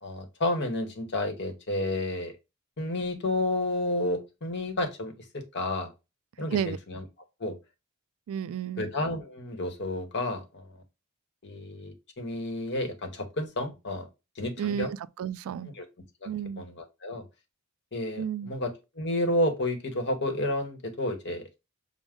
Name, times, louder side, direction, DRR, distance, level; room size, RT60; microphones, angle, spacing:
voice 1, 0.0-2.3 2.8-5.9 6.4-7.0 7.4-7.6 8.8-10.8 11.4-14.1 14.4-14.9 15.7-15.9 16.2-16.3 16.6-17.2 17.9-21.4, left 1 dB, 55° left, 1.0 m, -31 dB
voice 2, 8.3-8.9 14.6-15.7 16.3-16.6 18.2-18.5, right 8 dB, 70° right, 0.3 m, -32 dB
6.1 x 2.1 x 3.6 m
head